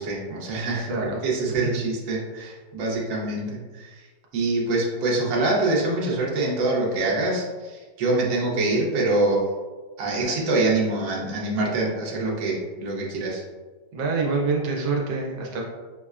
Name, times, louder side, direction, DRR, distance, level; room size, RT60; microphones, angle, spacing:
voice 1, 0.0-0.9 1.2-3.9 4.3-9.4 10.0-13.4, right 2 dB, 60° right, -3 dB, 1.0 m, -25 dB
voice 2, 0.9-1.2 1.5-1.8 13.9-15.6, right 4 dB, 80° right, -1 dB, 1.3 m, -26 dB
5.3 x 2.1 x 2.3 m, 1.3 s
omnidirectional pair, 1.9 m